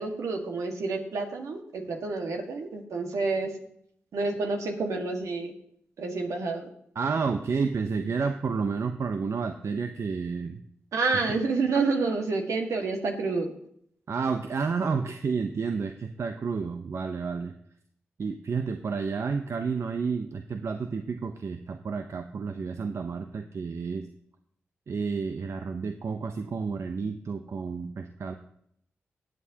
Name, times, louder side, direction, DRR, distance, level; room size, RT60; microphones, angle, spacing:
voice 1, 0.0-3.6 4.1-5.5 6.0-6.7 10.9-13.5, right 3 dB, 75° right, 3 dB, 1.7 m, -29 dB
voice 2, 7.0-10.6 14.1-17.6 18.2-24.1 24.9-28.3, right 5 dB, 60° right, 7 dB, 0.7 m, -30 dB
19.0 x 7.5 x 2.9 m, 0.69 s
supercardioid pair, 40°, 5 cm